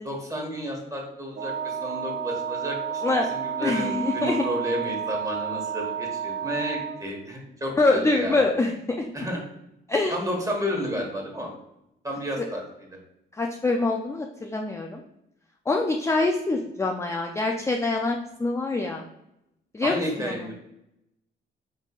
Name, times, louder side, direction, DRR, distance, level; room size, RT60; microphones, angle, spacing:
voice 1, 0.0-3.0 3.3-8.5 9.1-9.4 10.1-11.5 12.0-12.6 19.8-20.5, equal, 15° right, 0 dB, 1.4 m, -31 dB
Wind instrument woodwind instrument, 1.3-7.1, right 8 dB, 65° right, 0.7 m, -31 dB
voice 2, 3.6-4.4 7.8-9.1 9.9-10.2 12.4-12.5 13.4-15.0 15.7-19.0 19.7-20.4, left 2 dB, 15° left, 2 dB, 0.4 m, -25 dB
5.3 x 3.6 x 2.4 m, 0.86 s
cardioid pair, 90°, 20 cm